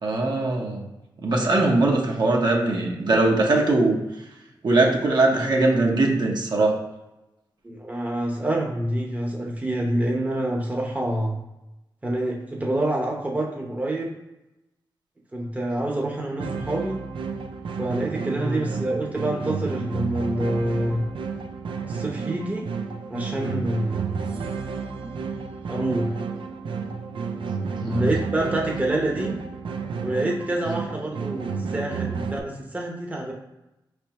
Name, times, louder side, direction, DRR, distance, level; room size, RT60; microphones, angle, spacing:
voice 1, 0.0-0.9 1.2-4.0 4.6-6.7 18.4-18.6 27.8-28.1, right 2 dB, 60° right, -1 dB, 0.9 m, -21 dB
voice 2, 7.6-11.4 12.0-14.1 15.3-17.0 17.8-21.0 21.9-22.7 23.1-24.2 25.7-26.1 27.9-29.4 30.0-33.3, right 1 dB, 20° right, -1 dB, 0.8 m, -27 dB
sound 1, 16.4-32.4, right 5 dB, 90° right, 0.4 m, -31 dB
5.3 x 3.4 x 2.9 m, 0.94 s
wide cardioid pair, 100°, 8 cm